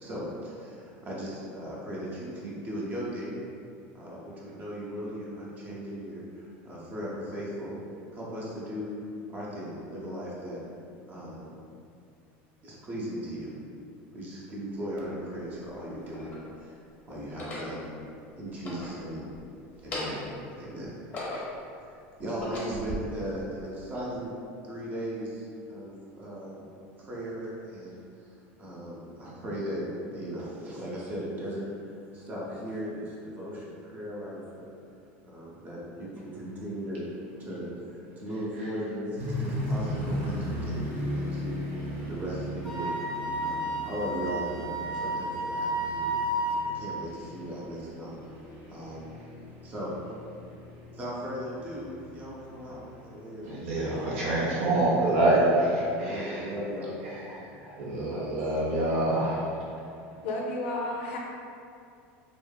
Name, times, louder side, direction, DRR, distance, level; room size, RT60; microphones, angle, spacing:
voice 1, 0.0-3.4 3.9-7.8 8.1-8.9 9.3-10.6 11.1-11.5 12.6-13.5 14.1-16.8 17.1-17.9 18.4-19.3 19.8-20.9 21.8-21.9 22.2-24.3 24.6-26.7 27.0-28.3 28.6-34.6 35.2-37.0 37.4-41.6 42.1-42.9 43.4-46.1 46.7-48.1 48.7-49.1 49.6-49.9 50.9-53.5 53.8-54.6 55.8-56.9, equal, 30° right, -6 dB, 0.6 m, -37 dB
sound 1, 14.7-14.8 15.7-16.5 17.2-17.7 18.5-19.4 19.7-20.4 20.8-21.7 22.2-23.0, left 1 dB, 25° left, 0.6 m, -38 dB
sound 2, 39.2-56.2 56.8-56.9 57.4-57.7, equal, 75° right, 0.9 m, -38 dB
Wind instrument woodwind instrument, 42.6-46.6, right 1 dB, ahead, 0.9 m, -31 dB
voice 2, 53.4-56.4 57.8-59.5, right 1 dB, 90° right, -6 dB, 0.5 m, -26 dB
voice 3, 60.2-61.2, left 2 dB, 85° left, -1 dB, 0.4 m, -31 dB
2.8 x 2.4 x 2.3 m, 2.5 s
supercardioid pair, 150°, 6 cm